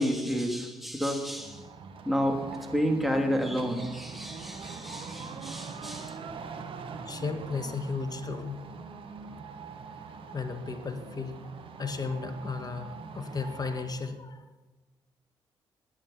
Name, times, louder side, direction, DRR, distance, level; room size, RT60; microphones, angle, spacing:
voice 1, 0.0-1.6 2.0-2.4 2.7-6.1, equal, ahead, 2 dB, 3.1 m, -30 dB
sound 1, 1.3-14.1, right 5 dB, 55° right, 1.4 m, -43 dB
voice 2, 7.0-8.6 9.9-10.0 10.3-11.4 11.8-14.4, left 4 dB, 35° left, 8 dB, 1.7 m, -35 dB
21.0 x 9.1 x 4.3 m, 1.2 s
figure-of-eight pair, 40°, 11 cm